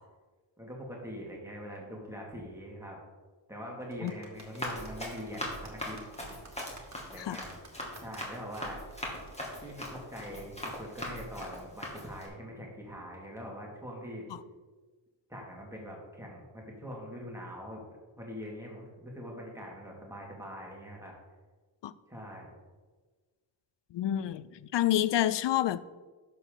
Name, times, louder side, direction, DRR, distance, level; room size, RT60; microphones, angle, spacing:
voice 1, 0.6-3.0 3.5-6.0 7.1-7.5 8.0-8.8 9.6-14.3 15.3-17.8 18.2-21.1 22.1-22.5, equal, 5° right, 2.4 m, -43 dB
sound 1, 3.8-11.4, right 3 dB, 35° right, 1.9 m, -55 dB
Run, 4.4-12.3, left 1 dB, 15° left, 2.4 m, -41 dB
voice 2, 23.9-25.8, left 12 dB, 70° left, 0.5 m, -28 dB
11.0 x 7.0 x 3.9 m
wide cardioid pair, 115°, 46 cm